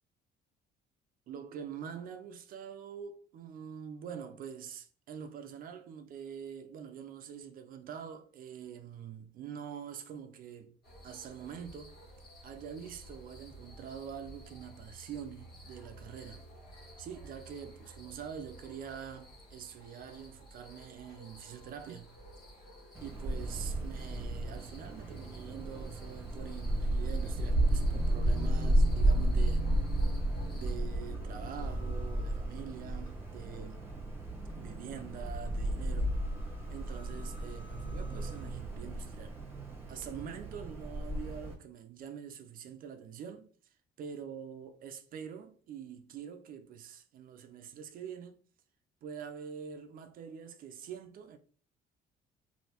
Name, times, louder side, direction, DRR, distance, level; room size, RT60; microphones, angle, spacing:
voice 1, 1.3-10.7 11.0-12.0 12.4-16.4 17.0-22.1 23.0-29.8 30.5-33.9 34.5-36.1 36.5-39.4 39.9-43.5 44.0-48.4 49.0-51.4, right 8 dB, 55° right, 0.4 m, -45 dB
sound 1, 10.8-30.8, right 1 dB, 65° left, 1.4 m, -53 dB
Wind, 22.9-41.5, right 1 dB, 15° right, 0.9 m, -32 dB
sound 2, 29.8-38.5, left 3 dB, 25° left, 1.2 m, -58 dB
3.2 x 2.6 x 2.8 m
cardioid pair, 110°, 17 cm